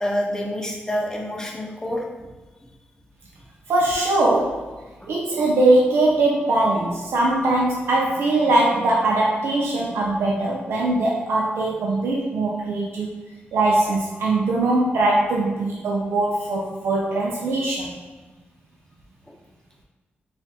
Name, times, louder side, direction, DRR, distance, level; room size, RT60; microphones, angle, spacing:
voice 1, 0.0-2.3 19.3-19.4, equal, 15° left, 0 dB, 0.7 m, -27 dB
voice 2, 3.7-4.7 5.1-13.1 13.5-17.9, right 2 dB, 85° right, -3 dB, 0.4 m, -21 dB
4.2 x 2.4 x 2.7 m, 1.2 s
cardioid pair, 70°, 4 cm